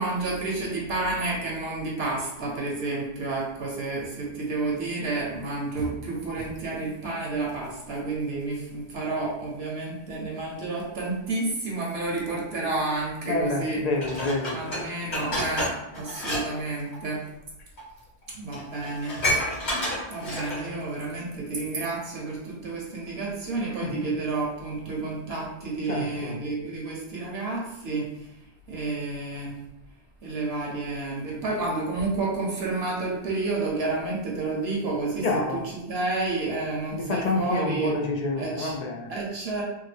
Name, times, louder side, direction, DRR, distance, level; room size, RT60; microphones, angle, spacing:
voice 1, 0.0-13.8 14.5-17.2 18.3-19.2 20.1-28.1 28.7-29.5 30.2-35.6 35.9-37.9 38.4-38.8 39.1-39.6, right 3 dB, 70° right, -3 dB, 1.0 m, -30 dB
voice 2, 13.2-14.5 23.6-24.2 25.8-26.4 35.2-35.7 36.9-39.1, left 3 dB, 55° left, 1 dB, 0.5 m, -28 dB
Dishes pots and pans, 14.0-16.4 16.7-17.0 17.8-17.9 18.2-18.3 18.5-20.7 21.2-21.3, left 1 dB, 80° left, 2.0 m, -29 dB
3.6 x 2.1 x 3.3 m, 0.92 s
omnidirectional pair, 1.1 m